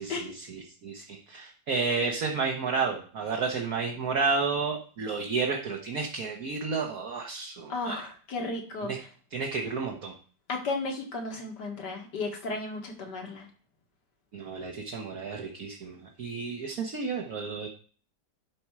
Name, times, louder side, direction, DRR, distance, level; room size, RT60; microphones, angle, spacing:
voice 1, 0.0-8.1 8.8-9.0 9.3-10.1 14.3-17.7, right 4 dB, 60° right, 0 dB, 1.5 m, -31 dB
voice 2, 7.7-8.9 10.5-13.5, left 3 dB, 75° left, 2 dB, 2.2 m, -34 dB
11.5 x 4.3 x 4.8 m, 0.42 s
omnidirectional pair, 1.8 m